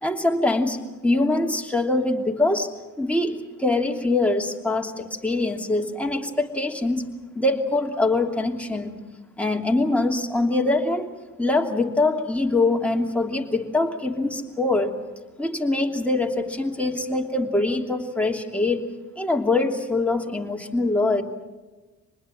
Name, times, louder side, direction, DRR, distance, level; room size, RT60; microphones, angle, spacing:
voice 1, 0.0-2.7 3.0-9.0 9.4-15.0 15.4-18.8 19.2-21.2, left 2 dB, 5° left, 1 dB, 2.8 m, -23 dB
26.5 x 20.5 x 7.6 m, 1.2 s
cardioid pair, 90°, 30 cm